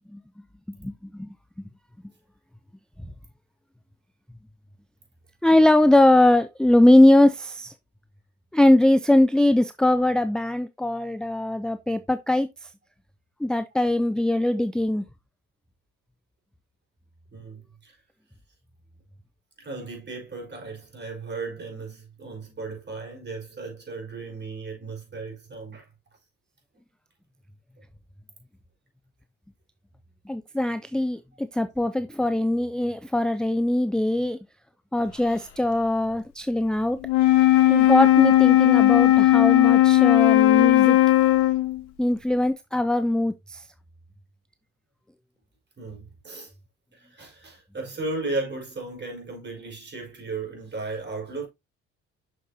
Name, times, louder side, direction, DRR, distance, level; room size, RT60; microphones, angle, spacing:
voice 1, 0.7-1.3 5.4-7.7 8.5-12.7 13.4-15.0 30.3-34.4 34.9-37.0 37.7-41.0 42.0-43.6, left 1 dB, ahead, 0.5 m, -21 dB
voice 2, 17.3-18.0 19.6-25.9 37.2-37.3 45.8-46.5 46.9-51.5, right 3 dB, 35° right, 4.6 m, -35 dB
Wind instrument woodwind instrument, 37.0-41.8, left 15 dB, 80° left, 0.9 m, -17 dB
6.5 x 6.4 x 2.7 m
hypercardioid pair, 60°, 30 cm